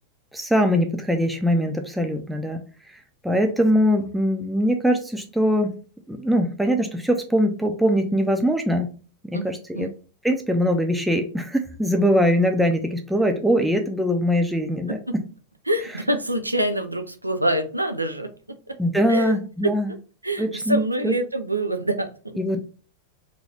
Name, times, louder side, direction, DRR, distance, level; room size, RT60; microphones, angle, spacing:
voice 1, 0.3-2.6 3.2-5.7 6.1-8.9 9.2-9.9 10.2-15.0 18.8-19.9 20.4-21.1 22.4-22.6, equal, 5° right, 4 dB, 0.4 m, -22 dB
voice 2, 15.7-18.8 19.1-19.4 19.6-20.0 20.2-22.3, right 1 dB, 85° right, 6 dB, 0.3 m, -26 dB
2.7 x 2.6 x 3.2 m, 0.38 s
figure-of-eight pair, 90°, 0 cm